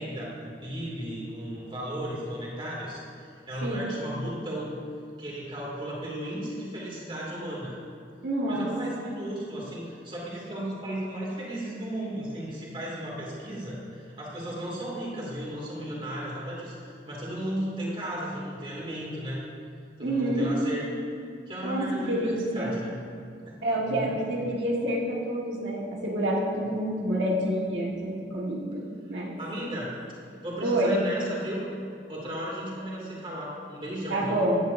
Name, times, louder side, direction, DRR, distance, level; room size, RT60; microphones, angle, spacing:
voice 1, 0.0-4.8 5.2-7.8 8.4-19.4 20.0-20.9 21.5-23.0 23.4-23.6 23.8-24.5 29.4-30.0 30.4-31.6 32.1-34.4, right 1 dB, 30° right, -4 dB, 2.6 m, -35 dB
voice 2, 8.2-8.7 20.0-20.5 21.6-22.7 23.6-29.3 30.6-30.9 34.1-34.6, right 1 dB, 85° right, -3 dB, 1.8 m, -28 dB
15.5 x 10.5 x 2.7 m, 2.5 s
head